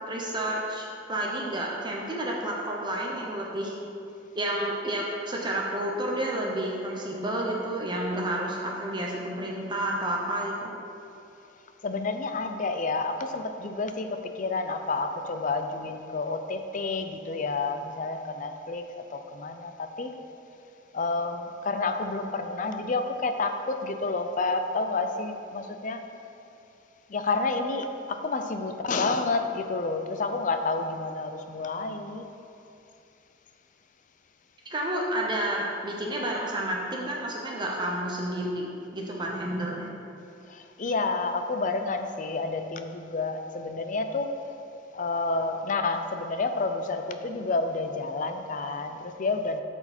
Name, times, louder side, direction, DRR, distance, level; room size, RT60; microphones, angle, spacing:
voice 1, 0.1-3.8 4.3-10.7 34.7-39.9, right 1 dB, 25° right, -2 dB, 0.9 m, -30 dB
voice 2, 11.8-18.8 19.1-20.1 20.9-26.0 27.1-32.3 40.5-44.3 44.9-49.6, left 3 dB, 45° left, 7 dB, 0.5 m, -29 dB
12.5 x 4.5 x 4.3 m, 2.7 s
head